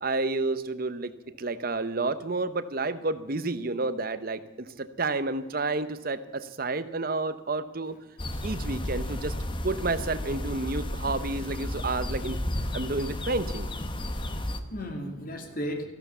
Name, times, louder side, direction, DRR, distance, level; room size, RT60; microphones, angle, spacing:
voice 1, 0.0-7.9 8.4-9.4 9.6-12.4 12.7-13.7, right 3 dB, 45° right, 12 dB, 0.9 m, -30 dB
sound 1, 8.2-14.6, left 1 dB, 25° left, 0.9 m, -33 dB
voice 2, 13.9-15.9, equal, 45° left, 4 dB, 2.4 m, -36 dB
14.5 x 12.0 x 7.0 m, 1.1 s
head